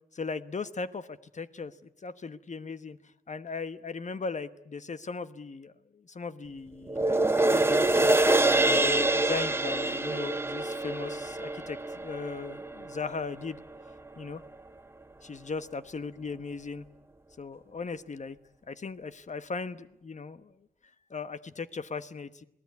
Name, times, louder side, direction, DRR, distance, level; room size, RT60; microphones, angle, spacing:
voice 1, 0.1-1.7 2.0-3.0 3.3-8.2 8.7-13.6 14.2-14.4 15.2-16.9 17.4-18.4 18.7-20.5 21.1-22.4, left 4 dB, 50° left, 12 dB, 1.1 m, -38 dB
sound 1, 6.9-13.4 13.9-14.0, right 2 dB, 15° right, 0.9 m, -26 dB
28.0 x 19.0 x 9.5 m, 0.81 s
wide cardioid pair, 120°, 15 cm